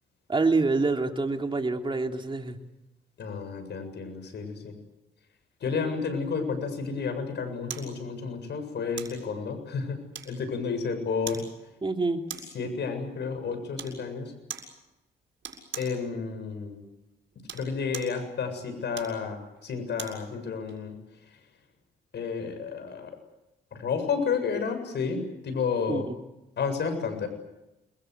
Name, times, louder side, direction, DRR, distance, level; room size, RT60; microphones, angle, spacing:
voice 1, 0.3-2.6 11.8-12.2 25.9-26.2, right 3 dB, 25° right, 4 dB, 3.2 m, -26 dB
voice 2, 3.2-4.8 5.6-10.0 10.3-11.4 12.5-14.3 15.8-16.8 17.5-20.9 22.1-23.1 23.8-26.0 26.6-27.3, left 5 dB, 60° left, 7 dB, 7.5 m, -31 dB
sound 1, 7.7-7.9 9.0-9.2 10.1-10.6 11.3-11.5 12.3-12.6 13.8-14.0 14.5-14.7 15.4-16.0 17.3-18.2 18.9-20.2 20.7-20.8, right 8 dB, 65° right, 7.1 m, -40 dB
29.0 x 22.0 x 8.2 m, 0.95 s
cardioid pair, 90°, 20 cm